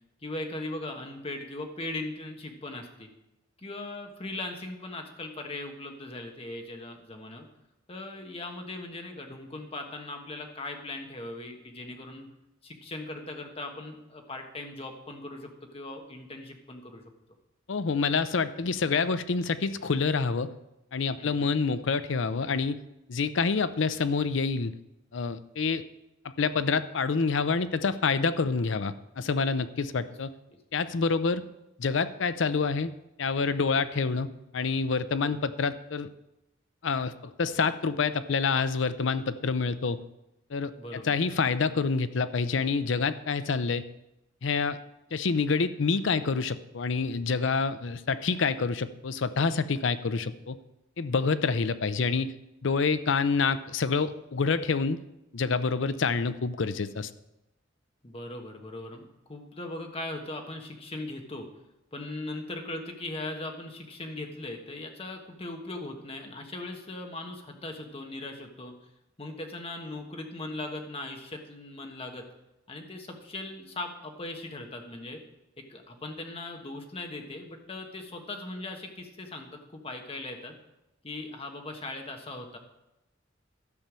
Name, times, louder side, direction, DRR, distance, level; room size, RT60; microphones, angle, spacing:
voice 1, 0.2-3.1 3.6-7.5 7.9-12.3 12.6-17.0 21.2-21.5 35.2-35.4 40.8-41.1 55.8-55.9 58.0-61.5 61.9-68.7 69.2-72.2 72.7-75.2 75.7-80.6 81.0-82.6, left 2 dB, 30° left, 3 dB, 1.4 m, -39 dB
voice 2, 17.7-20.5 20.9-22.8 23.1-24.7 25.1-25.8 26.2-30.3 30.7-31.4 31.8-32.9 33.2-36.1 36.8-40.0 40.5-43.9 44.4-44.8 45.1-50.6 51.0-52.3 52.6-55.0 55.3-57.1, left 4 dB, 70° left, 13 dB, 0.6 m, -27 dB
12.0 x 5.6 x 7.4 m, 0.91 s
head